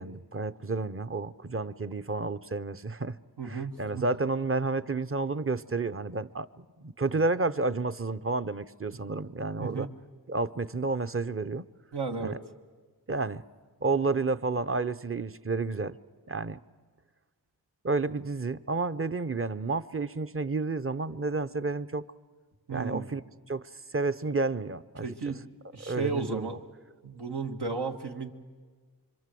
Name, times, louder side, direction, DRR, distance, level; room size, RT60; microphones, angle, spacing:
voice 1, 0.0-3.2 3.4-9.9 10.3-11.7 12.2-12.4 13.1-13.4 13.8-16.0 16.3-16.6 17.8-22.0 22.7-23.2 23.5-25.1 25.9-26.5, right 3 dB, 35° right, 0.8 m, -31 dB
voice 2, 3.4-4.1 9.6-9.9 11.9-12.4 22.7-23.1 25.0-25.4 25.7-26.6 27.0-28.3, right 4 dB, 85° right, 1.7 m, -34 dB
26.0 x 25.0 x 7.7 m
wide cardioid pair, 50°, 39 cm